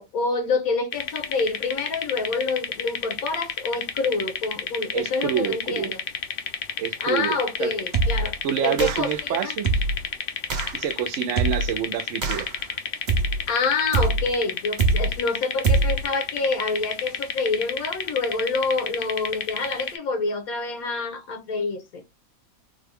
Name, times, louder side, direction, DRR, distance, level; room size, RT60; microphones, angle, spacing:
voice 1, 0.0-6.0 7.0-8.4 8.6-9.5 13.5-22.0, left 3 dB, 85° left, 1.4 m, -27 dB
sound 1, 0.9-20.0, left 7 dB, 65° left, 0.5 m, -31 dB
voice 2, 4.9-5.9 6.8-7.7 8.4-9.7 10.7-12.5, right 10 dB, 70° right, 0.9 m, -27 dB
sound 2, 7.9-8.4 8.8-9.2 9.6-10.1 10.5-10.8 11.4-11.8 12.2-12.6 13.1-13.5 13.9-14.3 14.8-15.2 15.6-16.1, right 3 dB, 90° right, 0.4 m, -23 dB
3.8 x 2.3 x 3.4 m
omnidirectional pair, 1.5 m